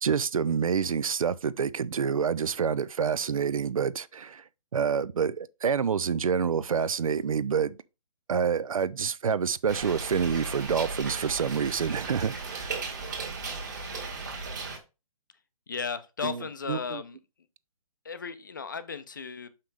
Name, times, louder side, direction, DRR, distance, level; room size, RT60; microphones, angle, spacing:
voice 1, 0.0-4.4 4.7-7.8 8.3-12.7 16.2-16.4 16.7-17.0, right 6 dB, 65° right, 0.5 m, -27 dB
sound 1, 9.7-14.8, right 4 dB, 30° right, 1.6 m, -36 dB
voice 2, 15.7-17.2 18.0-19.5, left 6 dB, 35° left, 0.6 m, -35 dB
6.3 x 5.8 x 3.3 m
hypercardioid pair, 180°, 19 cm